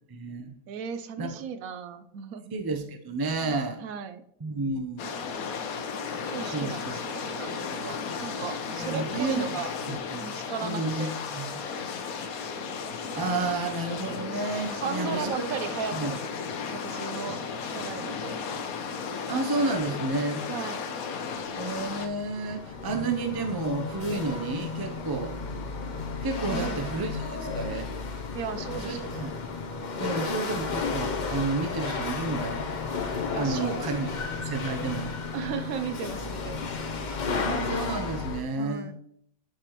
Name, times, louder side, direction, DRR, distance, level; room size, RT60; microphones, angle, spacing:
voice 1, 0.1-0.5 1.2-1.4 2.5-3.8 4.4-5.0 6.4-7.0 8.7-9.5 9.9-11.6 13.1-15.3 15.9-16.1 19.3-20.4 21.5-25.3 26.2-27.9 28.8-28.9 29.2-29.3 30.0-32.6 33.3-35.1 37.4-38.9, right 3 dB, 25° right, 5 dB, 0.5 m, -31 dB
voice 2, 0.7-2.5 3.4-4.2 6.3-9.7 10.2-11.1 14.7-18.4 20.5-20.8 26.5-26.9 28.3-29.3 33.3-34.2 35.3-36.8 38.6-38.9, right 7 dB, 80° right, 11 dB, 1.0 m, -36 dB
sound 1, 5.0-22.1, left 5 dB, 80° left, 1.3 m, -34 dB
Chatter / Hiss / Rattle, 21.5-38.4, left 4 dB, 45° left, 0.6 m, -33 dB
10.5 x 4.9 x 3.0 m, 0.69 s
omnidirectional pair, 1.5 m